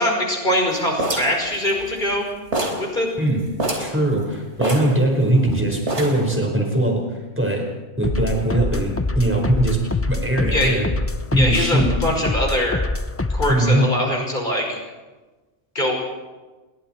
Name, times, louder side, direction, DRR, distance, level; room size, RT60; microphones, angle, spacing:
voice 1, 0.0-2.3 2.8-3.1 5.5-5.6 10.5-10.8 11.4-12.8 13.3-14.8 15.7-15.9, left 1 dB, 40° left, 1 dB, 5.8 m, -22 dB
sound 1, 1.0-2.2 2.5-2.9 3.2-3.3 3.6-4.0 4.6-5.5 5.9-6.3, right 2 dB, 65° right, 4.1 m, -26 dB
voice 2, 3.8-7.7 8.0-10.9 11.3-12.0 13.5-14.0, right 1 dB, 10° right, 1 dB, 5.1 m, -21 dB
sound 2, 8.0-13.7, left 2 dB, 20° left, 0.4 m, -25 dB
29.0 x 22.5 x 4.6 m, 1.2 s
omnidirectional pair, 1.3 m